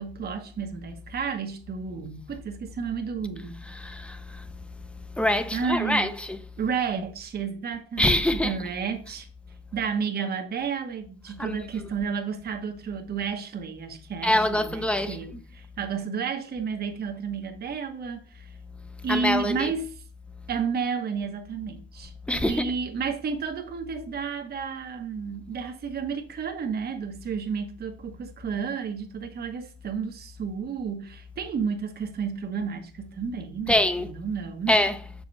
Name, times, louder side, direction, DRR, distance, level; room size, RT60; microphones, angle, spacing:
voice 1, 0.0-3.6 5.5-6.1 6.6-9.3 9.7-18.5 19.0-20.0 20.5-22.1 22.5-34.7, right 6 dB, 50° right, 1.1 m, -31 dB
voice 2, 3.6-4.5 4.8-6.5 8.0-8.6 9.1-9.2 11.4-11.9 14.2-15.4 19.0-19.7 22.3-22.7 33.7-34.1 34.7-35.1, left 1 dB, 5° left, 0.8 m, -25 dB
6.6 x 4.9 x 4.0 m
cardioid pair, 90°, 20 cm